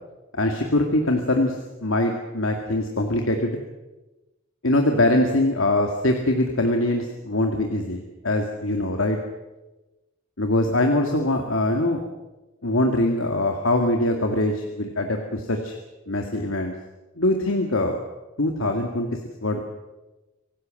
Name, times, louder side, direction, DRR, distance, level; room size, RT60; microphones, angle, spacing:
voice 1, 0.4-1.6 1.8-3.6 4.6-9.2 10.4-12.0 12.6-15.8 16.1-16.7 17.2-18.0 18.4-19.1 19.4-19.7, left 1 dB, 80° left, 3 dB, 2.2 m, -23 dB
26.0 x 18.0 x 7.7 m, 1.1 s
head